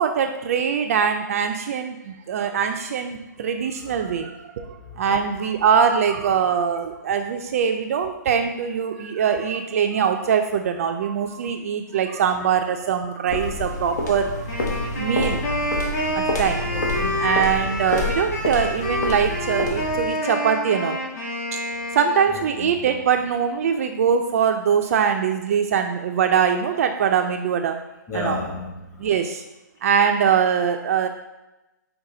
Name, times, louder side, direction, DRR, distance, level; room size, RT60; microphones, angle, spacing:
voice 1, 0.0-14.5 15.0-15.4 16.1-16.7 17.2-21.0 21.5-21.6 21.9-27.8 28.1-28.4 29.0-29.4 29.8-31.1, right 7 dB, 50° right, 5 dB, 0.3 m, -22 dB
sound 1, 13.3-20.1, left 2 dB, 60° left, 0.9 m, -28 dB
Wind instrument woodwind instrument, 14.5-22.6, left 1 dB, 45° left, 1.4 m, -28 dB
voice 2, 16.7-17.6 22.6-22.8 28.1-29.1, left 2 dB, 25° left, -5 dB, 1.5 m, -33 dB
5.4 x 2.2 x 3.7 m, 0.98 s
hypercardioid pair, 135°, 10 cm